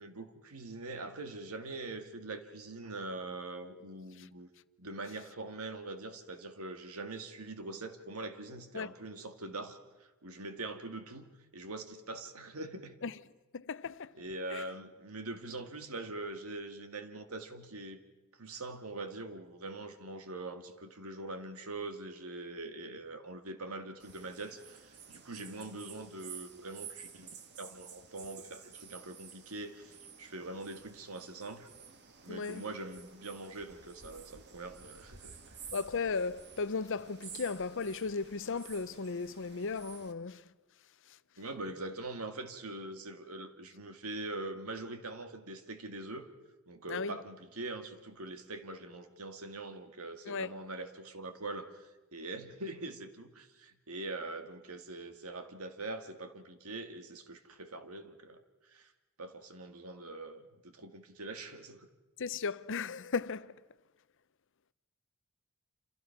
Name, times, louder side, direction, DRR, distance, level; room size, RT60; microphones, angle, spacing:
voice 1, 0.0-4.5 4.8-13.0 14.1-18.0 18.4-31.7 32.2-35.4 41.4-46.3 46.7-58.9 59.2-61.9, right 2 dB, 75° right, 2.1 m, -43 dB
voice 2, 13.5-14.1 14.5-14.6 32.3-32.6 35.7-40.4 46.9-47.1 50.3-50.5 62.2-63.5, left 4 dB, 60° left, 0.7 m, -36 dB
sound 1, 24.0-40.1, right 7 dB, 50° right, 1.8 m, -52 dB
27.5 x 27.5 x 5.9 m
head